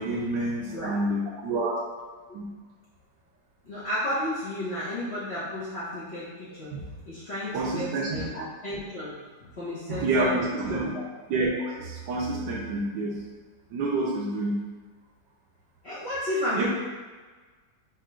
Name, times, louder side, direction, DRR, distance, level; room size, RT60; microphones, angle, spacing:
voice 1, 0.0-1.7 2.3-2.4 6.7-6.8 7.5-8.2 9.9-10.9 11.3-11.5 11.8-13.2 13.7-14.5 16.6-16.7, right 2 dB, 75° right, -4 dB, 1.3 m, -28 dB
voice 2, 3.6-6.7 7.1-9.1 9.4-10.4 10.7-11.0 15.8-16.7, left 1 dB, 45° left, -10 dB, 1.0 m, -32 dB
4.8 x 2.3 x 4.6 m, 1.4 s
omnidirectional pair, 2.0 m